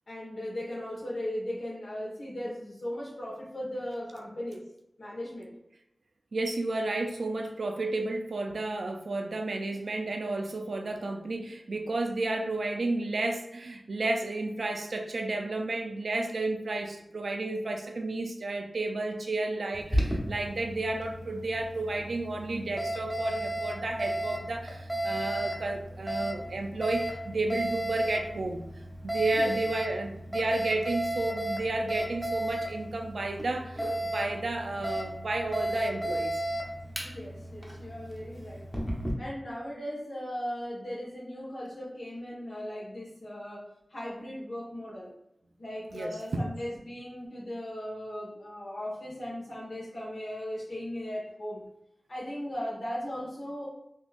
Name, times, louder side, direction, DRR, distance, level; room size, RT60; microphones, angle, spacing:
voice 1, 0.1-4.6 5.0-5.5 29.3-29.5 37.0-38.6 39.2-43.6 43.9-45.1 45.6-51.6 52.1-53.7, equal, 75° left, -6 dB, 1.4 m, -37 dB
voice 2, 6.3-28.6 29.0-36.4 45.9-46.5, right 2 dB, 80° right, 3 dB, 0.4 m, -32 dB
Alarm, 19.7-39.1, right 1 dB, ahead, 0.7 m, -34 dB
3.6 x 2.8 x 2.4 m, 0.80 s
wide cardioid pair, 90°, 0 cm